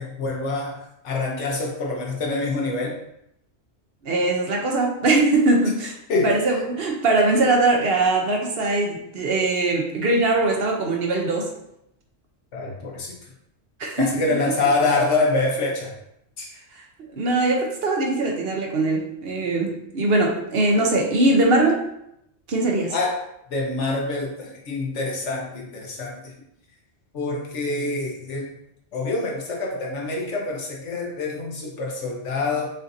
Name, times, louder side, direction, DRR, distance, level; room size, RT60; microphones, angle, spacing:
voice 1, 0.0-3.0 6.1-6.3 12.5-13.1 14.0-15.9 16.4-16.5 22.9-23.2 23.5-26.3 27.1-28.5 28.9-32.7, left 3 dB, 85° left, -1 dB, 1.2 m, -26 dB
voice 2, 4.0-5.9 6.2-11.5 13.8-14.5 17.1-21.8 22.5-22.9, right 2 dB, 60° right, 1 dB, 0.9 m, -21 dB
5.6 x 2.6 x 2.6 m, 0.78 s
omnidirectional pair, 1.2 m